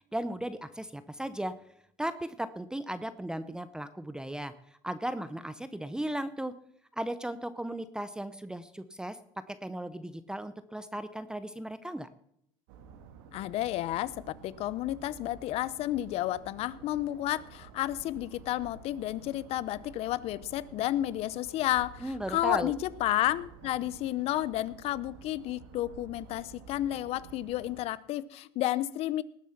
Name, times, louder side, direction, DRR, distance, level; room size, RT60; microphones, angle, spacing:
voice 1, 0.0-1.5 2.0-6.5 6.9-9.2 9.5-12.1 22.0-22.7, right 1 dB, 5° right, 13 dB, 0.7 m, -36 dB
sound 1, 12.7-27.8, right 6 dB, 85° right, 1.7 m, -51 dB
voice 2, 13.3-29.2, left 14 dB, 60° left, 19 dB, 0.7 m, -31 dB
19.0 x 7.1 x 5.9 m, 0.72 s
supercardioid pair, 95°, 12 cm